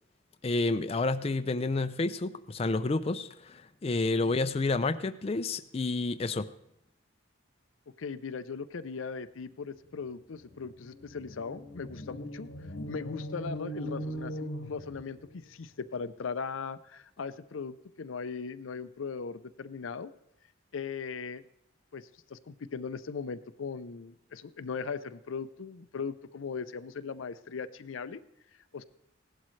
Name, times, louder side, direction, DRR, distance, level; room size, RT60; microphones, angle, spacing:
voice 1, 0.4-6.5, left 3 dB, 30° left, 10 dB, 0.4 m, -30 dB
voice 2, 8.0-12.5 12.8-20.1 20.7-21.4 21.9-28.2 28.7-28.8, left 5 dB, 85° left, 13 dB, 0.5 m, -39 dB
sound 1, 10.4-15.4, equal, 70° left, 1.0 m, -40 dB
16.5 x 11.5 x 3.2 m, 0.81 s
head